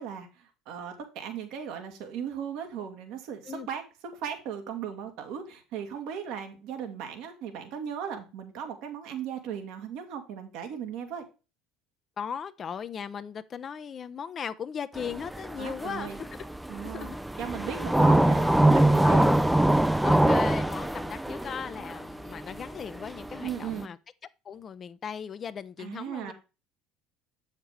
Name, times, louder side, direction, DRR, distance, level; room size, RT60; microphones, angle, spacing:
voice 1, 0.0-11.2 15.6-16.2 16.7-19.3 23.4-23.9 25.8-26.3, right 8 dB, 70° right, 1.9 m, -37 dB
voice 2, 12.2-16.5 16.8-17.2 19.0-19.4 20.0-24.0 24.4-26.3, left 7 dB, 40° left, 0.6 m, -37 dB
sound 1, 15.0-23.8, right 1 dB, 5° right, 0.4 m, -24 dB
7.7 x 6.6 x 3.3 m
hypercardioid pair, 80°, 0 cm